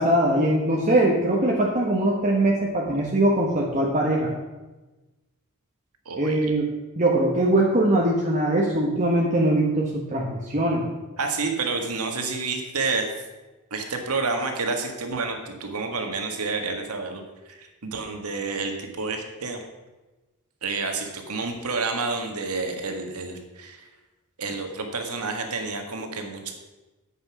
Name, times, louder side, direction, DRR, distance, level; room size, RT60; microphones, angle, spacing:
voice 1, 0.0-4.3 6.2-6.7 7.0-10.9, right 1 dB, 35° right, -2 dB, 1.3 m, -21 dB
voice 2, 6.1-6.4 11.2-13.1 13.7-19.6 20.6-23.8 24.4-26.5, right 4 dB, 85° right, 4 dB, 1.9 m, -29 dB
9.8 x 8.1 x 6.1 m, 1.1 s
head